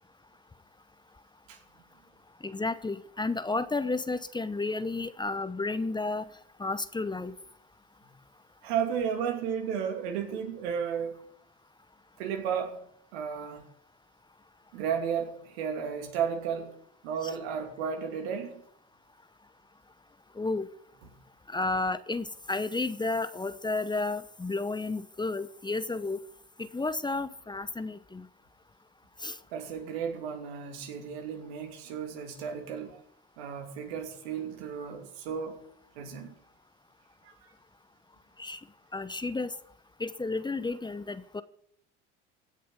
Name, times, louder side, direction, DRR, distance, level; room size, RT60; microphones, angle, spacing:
voice 1, 2.4-6.3 6.6-7.3 20.4-20.7 21.5-26.2 26.6-28.3 29.2-29.4 38.4-38.6 38.9-39.5 40.0-41.4, left 3 dB, 15° left, 0.9 m, -32 dB
voice 2, 8.6-11.2 12.2-12.8 13.1-13.6 14.7-16.7 17.0-18.6 29.5-33.0 33.4-35.6 36.0-36.3 37.2-37.5, right 7 dB, 80° right, 2.7 m, -33 dB
16.0 x 6.6 x 8.9 m
hypercardioid pair, 75°, 31 cm